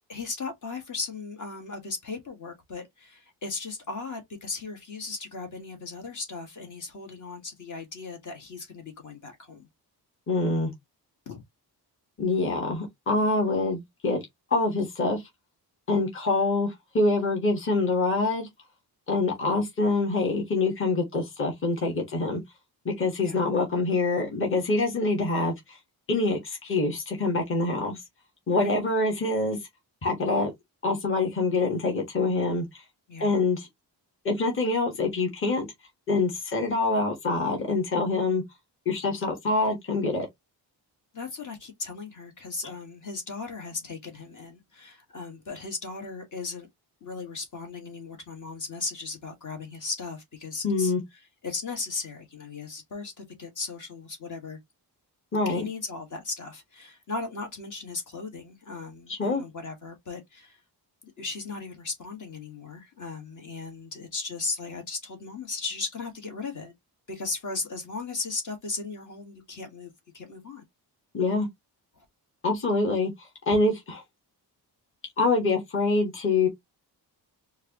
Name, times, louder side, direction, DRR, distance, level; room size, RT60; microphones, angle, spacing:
voice 1, 0.1-9.7 11.3-11.4 23.2-23.4 26.1-26.4 28.5-28.7 33.1-33.3 41.1-46.7 47.0-50.9 51.4-54.6 55.5-60.6 61.2-66.7 67.1-70.6 72.0-72.1, left 3 dB, 50° left, 1.7 m, -37 dB
voice 2, 10.3-10.7 12.2-14.2 14.5-15.2 15.9-18.5 19.1-22.4 22.8-25.8 26.1-28.0 28.5-29.6 30.0-30.5 30.8-32.8 33.2-33.7 34.2-35.7 36.1-38.4 38.8-40.3 50.6-51.0 55.3-55.7 59.1-59.4 71.1-71.5 72.4-74.0 75.2-76.5, left 3 dB, 30° left, 1.4 m, -25 dB
4.6 x 2.4 x 2.9 m
wide cardioid pair, 140°, 40 cm